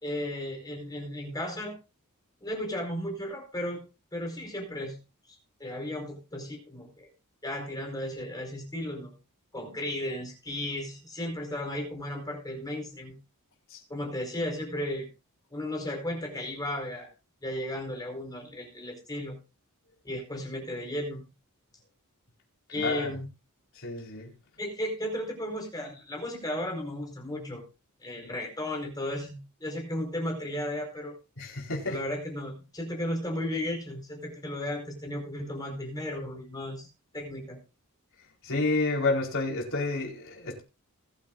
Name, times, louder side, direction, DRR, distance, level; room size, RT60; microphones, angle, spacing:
voice 1, 0.0-1.8 2.4-3.8 4.1-5.0 5.3-7.1 7.4-9.2 9.5-13.2 13.9-15.1 15.5-17.1 17.4-19.4 20.0-21.2 22.7-23.2 24.6-27.6 28.0-31.2 31.9-36.9 37.1-37.6, left 1 dB, 15° left, 4.6 m, -34 dB
voice 2, 22.7-23.1 23.8-24.3 31.4-32.0 38.4-40.6, left 3 dB, 60° left, 4.7 m, -29 dB
21.0 x 9.7 x 2.5 m
head